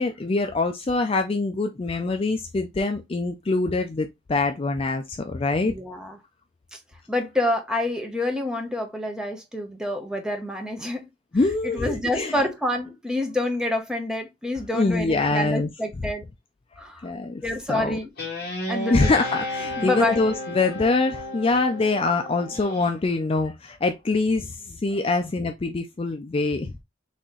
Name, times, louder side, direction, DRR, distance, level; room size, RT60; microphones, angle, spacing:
voice 1, 0.0-5.7 11.3-12.4 14.7-15.7 17.0-17.4 17.7-18.0 18.9-26.8, left 3 dB, 25° left, 0.4 m, -24 dB
voice 2, 5.6-6.2 6.7-6.8 7.1-11.1 11.6-16.2 16.8-17.1 17.4-18.1 18.7-19.2 19.8-20.2, left 1 dB, 5° right, 0.8 m, -27 dB
Guitar, 18.2-22.9, left 1 dB, 50° left, 2.2 m, -33 dB
4.1 x 2.9 x 3.7 m
head